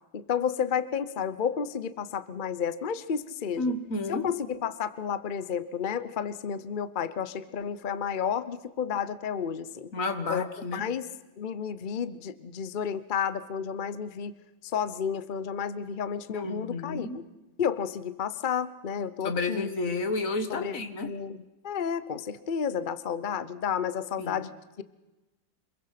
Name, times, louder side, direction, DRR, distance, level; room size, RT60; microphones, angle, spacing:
voice 1, 0.1-3.7 4.1-9.9 10.3-10.5 10.7-11.1 11.4-14.3 14.6-17.2 17.6-19.7 20.5-20.7 21.0-21.4 21.6-24.5, left 7 dB, 60° left, 14 dB, 0.5 m, -31 dB
voice 2, 3.6-4.3 9.9-10.8 16.3-17.2 19.2-21.1 24.2-24.5, left 3 dB, 45° left, 9 dB, 2.0 m, -31 dB
26.0 x 22.0 x 5.8 m, 1.1 s
omnidirectional pair, 2.1 m